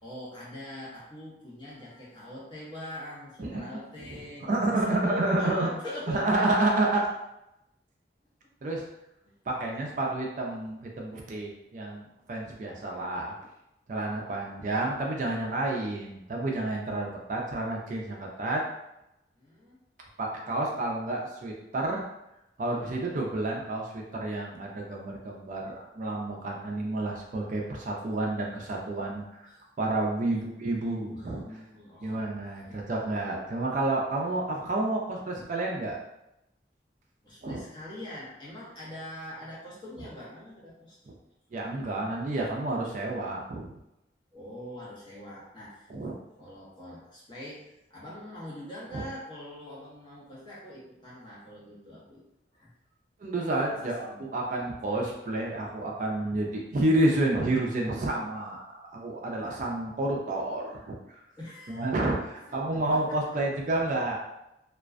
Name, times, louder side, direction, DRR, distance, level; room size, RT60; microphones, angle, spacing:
voice 1, 0.0-6.7 9.2-9.3 10.0-10.1 19.4-19.8 22.6-23.1 30.3-32.3 32.7-32.9 37.2-41.0 44.3-45.9 46.4-52.2 52.5-52.7 53.7-54.3 59.4-59.6 61.4-61.9 62.3-62.6 62.9-63.2, left 1 dB, 25° left, -7 dB, 0.8 m, -43 dB
voice 2, 4.5-5.7 6.1-7.0 8.6-8.8 9.5-13.3 13.9-18.6 20.2-22.0 22.6-29.5 29.8-31.4 32.0-36.0 37.4-37.6 41.1-41.2 41.5-43.7 45.9-46.1 48.9-49.0 53.2-61.2 61.7-64.2, right 2 dB, 45° right, -1 dB, 0.4 m, -30 dB
2.4 x 2.1 x 2.4 m, 0.88 s
head